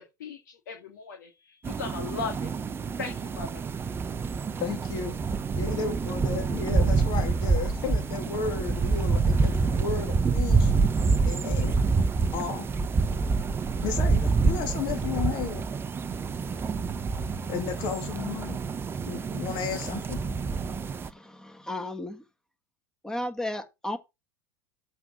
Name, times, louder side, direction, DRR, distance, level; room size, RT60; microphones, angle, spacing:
voice 1, 0.0-2.5 3.0-3.6, left 5 dB, 80° left, 2.3 m, -37 dB
sound 1, 1.6-21.1, right 4 dB, 20° right, 0.8 m, -27 dB
voice 2, 4.6-5.2 5.5-10.8 11.2-11.8 12.3-12.7 13.8-15.6 17.5-18.6 19.0-20.2, left 7 dB, 50° left, 2.8 m, -33 dB
voice 3, 21.0-22.2 23.0-24.0, left 1 dB, 5° left, 1.6 m, -34 dB
7.9 x 5.4 x 6.1 m
hypercardioid pair, 100°, 10 cm